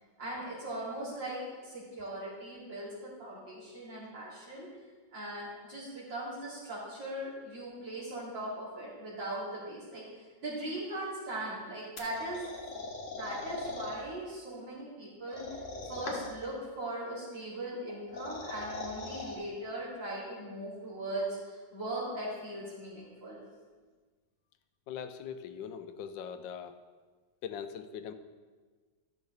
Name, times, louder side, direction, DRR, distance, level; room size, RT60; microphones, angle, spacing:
voice 1, 0.2-4.7 5.1-12.4 13.1-23.4, right 1 dB, 75° right, -7 dB, 3.8 m, -39 dB
sound 1, 12.0-14.0 15.3-16.4 17.9-19.4, left 3 dB, 45° left, 1.6 m, -40 dB
voice 2, 24.9-26.8 27.4-28.1, left 8 dB, 85° left, 10 dB, 1.3 m, -41 dB
13.0 x 6.9 x 4.0 m, 1.4 s
omnidirectional pair, 2.0 m